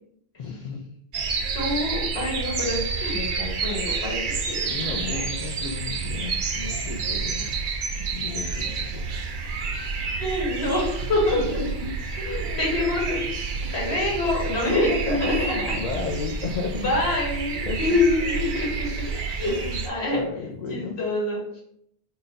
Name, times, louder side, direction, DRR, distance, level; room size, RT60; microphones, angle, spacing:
voice 1, 0.4-0.8 4.7-7.5 8.0-9.0 11.3-11.9 14.6-16.9 17.7-17.8 19.5-19.8 20.1-21.0, left 4 dB, 55° left, -1 dB, 0.5 m, -33 dB
sound 1, 1.1-19.9, right 4 dB, 60° right, 0.6 m, -29 dB
voice 2, 1.5-4.2 4.5-5.2 10.2-11.4 12.2-15.3 16.7-19.5 19.8-20.2 20.7-21.6, left 2 dB, 85° left, -4 dB, 1.6 m, -26 dB
3.8 x 2.2 x 3.8 m, 0.72 s
omnidirectional pair, 1.1 m